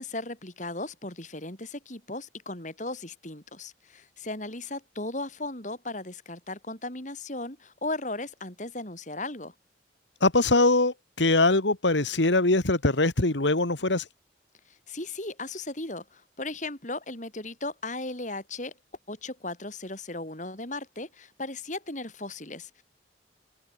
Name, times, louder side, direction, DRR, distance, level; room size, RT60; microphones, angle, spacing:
voice 1, 0.0-9.5 14.7-18.7 19.1-22.8, left 2 dB, 40° left, 4.6 m, -36 dB
voice 2, 10.2-14.0, left 2 dB, 75° left, 2.0 m, -22 dB
head